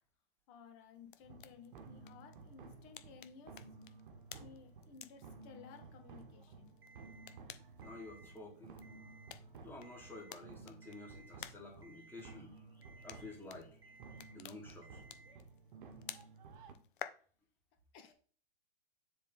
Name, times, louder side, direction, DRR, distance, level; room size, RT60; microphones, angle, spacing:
voice 1, 0.5-3.6 4.3-6.7 17.9-18.1, left 6 dB, 35° left, 5 dB, 1.5 m, -57 dB
sound 1, 0.9-17.1, left 10 dB, 60° left, 0.7 m, -55 dB
sound 2, 1.2-16.7, right 4 dB, 55° right, 1.2 m, -55 dB
Alarm, 6.8-7.4 7.8-8.4 8.8-9.4 9.8-10.4 10.8-11.4 11.8-12.4 12.8-13.4 13.8-14.4 14.8-15.4, right 2 dB, 85° right, 1.3 m, -61 dB
voice 2, 7.8-8.8 9.3-14.0 14.3-15.0, left 2 dB, 5° left, -1 dB, 2.1 m, -52 dB
7.2 x 3.9 x 3.9 m, 0.42 s
hypercardioid pair, 115°, 30 cm